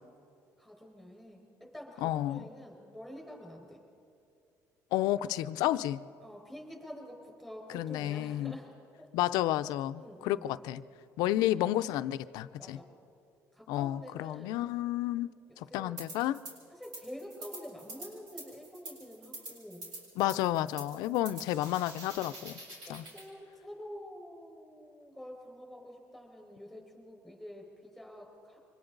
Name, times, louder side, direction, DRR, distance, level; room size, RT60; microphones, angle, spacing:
voice 1, 0.6-3.8 6.2-8.7 9.0-9.1 10.0-10.4 12.6-12.9 13.5-14.6 15.7-15.9 16.7-19.9 20.8-21.2 22.9-28.6, equal, ahead, 0 dB, 4.9 m, -48 dB
voice 2, 2.0-2.5 4.9-6.0 7.7-8.5 9.1-10.8 11.2-12.8 13.7-15.3 15.6-16.4 20.2-22.6 22.9-23.0, left 14 dB, 85° left, 13 dB, 0.5 m, -31 dB
sound 1, 16.0-16.5 16.8-23.3, right 2 dB, 85° right, 6.5 m, -46 dB
28.0 x 24.5 x 3.9 m, 2.6 s
cardioid pair, 150°, 7 cm